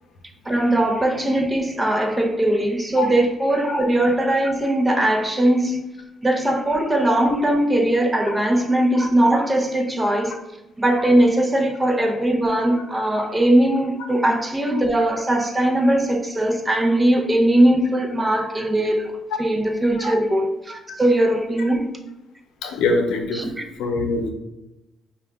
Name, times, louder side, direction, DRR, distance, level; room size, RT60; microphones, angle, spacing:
voice 1, 0.5-5.8 6.2-10.4 10.8-19.1 19.4-21.9 23.3-23.5, right 1 dB, 15° right, 2 dB, 0.7 m, -20 dB
voice 2, 22.6-23.4 23.8-24.3, left 3 dB, 90° left, 4 dB, 0.6 m, -23 dB
5.1 x 2.3 x 3.5 m, 0.96 s
cardioid pair, 90°, 0 cm